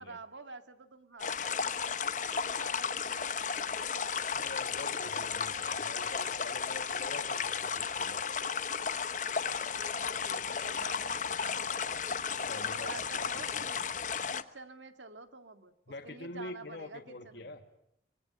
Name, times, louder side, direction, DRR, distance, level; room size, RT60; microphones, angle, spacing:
voice 1, 0.0-4.3 9.8-12.0 12.6-13.9 14.3-15.7 16.0-17.6, right 3 dB, 90° right, 8 dB, 2.0 m, -49 dB
sound 1, 1.2-14.4, left 6 dB, 45° left, 1.0 m, -34 dB
voice 2, 4.3-8.3 12.4-13.3 13.6-13.7 15.9-17.6, left 2 dB, 65° left, 4 dB, 1.7 m, -45 dB
25.0 x 21.0 x 9.5 m, 0.77 s
head